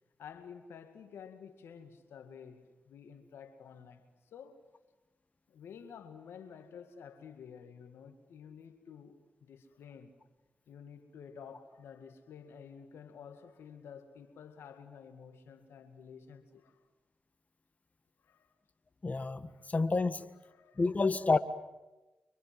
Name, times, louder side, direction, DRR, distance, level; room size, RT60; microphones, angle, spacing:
voice 1, 0.2-4.6 5.5-10.1 10.7-16.8 18.2-18.5 19.5-19.7 20.4-21.4, left 7 dB, 80° left, 8 dB, 2.1 m, -51 dB
voice 2, 19.0-20.3 20.8-21.4, left 3 dB, 40° left, 12 dB, 1.6 m, -29 dB
29.5 x 25.5 x 7.8 m, 1.1 s
supercardioid pair, 45°, 4 cm